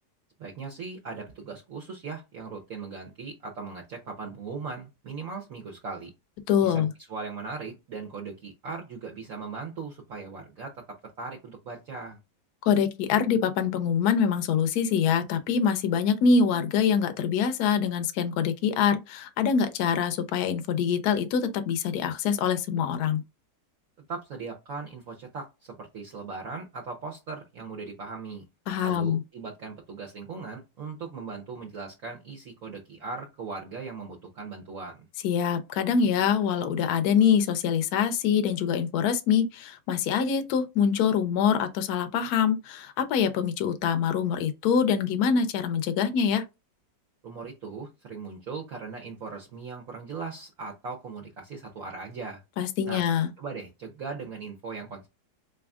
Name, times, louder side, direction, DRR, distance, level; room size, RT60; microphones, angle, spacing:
voice 1, 0.4-6.1 6.6-10.8 11.2-12.2 24.1-28.4 28.8-35.1 47.2-52.4 52.9-53.1 53.4-55.1, right 4 dB, 55° right, 1.1 m, -39 dB
voice 2, 6.5-6.9 12.7-23.2 28.7-29.2 35.2-46.4 52.6-53.3, left 7 dB, 70° left, 1.1 m, -24 dB
3.9 x 3.4 x 2.3 m
omnidirectional pair, 1.9 m